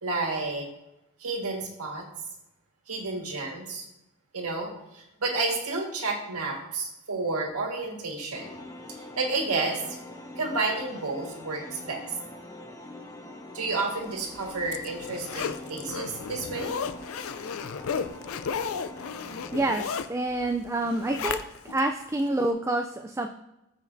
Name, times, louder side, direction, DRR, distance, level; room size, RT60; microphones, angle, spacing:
voice 1, 0.0-0.7 1.2-2.1 2.9-3.9 4.3-8.6 8.9-9.8 10.4-12.0 13.5-16.7, right 3 dB, 90° right, 1 dB, 1.7 m, -31 dB
sound 1, 8.3-19.6, left 2 dB, 15° left, 0.8 m, -44 dB
Zipper (clothing), 14.2-21.8 22.2-22.3, left 6 dB, 65° left, 0.4 m, -34 dB
voice 2, 19.5-21.4 21.6-23.3, right 2 dB, 10° right, 4 dB, 0.3 m, -27 dB
14.0 x 5.1 x 2.6 m, 0.93 s
head